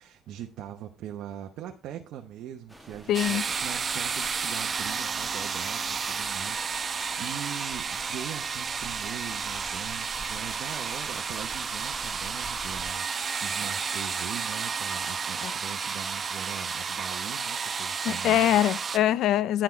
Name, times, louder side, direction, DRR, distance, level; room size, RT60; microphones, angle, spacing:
voice 1, 0.0-18.6, right 10 dB, 80° right, 0.9 m, -41 dB
sound 1, 2.7-12.9, right 1 dB, ahead, 1.5 m, -49 dB
voice 2, 3.1-3.4 15.4-15.5 18.0-19.6, left 12 dB, 75° left, 0.5 m, -23 dB
sound 2, 3.1-19.0, right 5 dB, 40° right, 1.0 m, -32 dB
10.0 x 6.0 x 4.5 m
cardioid pair, 90°, 0 cm